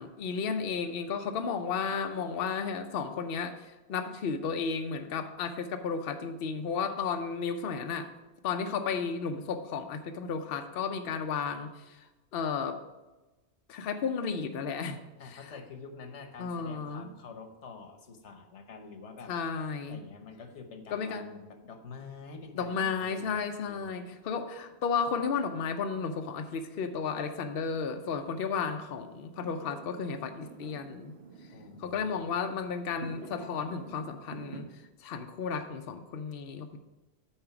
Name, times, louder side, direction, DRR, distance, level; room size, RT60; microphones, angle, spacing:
voice 1, 0.0-8.1 8.4-12.8 13.7-15.0 15.2-15.5 16.4-17.1 19.3-20.0 20.9-21.2 22.5-31.1 31.8-34.7 35.0-36.8, left 5 dB, 60° left, 6 dB, 0.8 m, -33 dB
voice 2, 15.2-19.3 19.9-23.9 31.5-32.3, left 4 dB, 85° left, 6 dB, 1.3 m, -47 dB
Fireworks, 20.1-34.6, right 4 dB, 65° right, 1.1 m, -52 dB
8.8 x 4.9 x 5.8 m, 1.1 s
omnidirectional pair, 1.2 m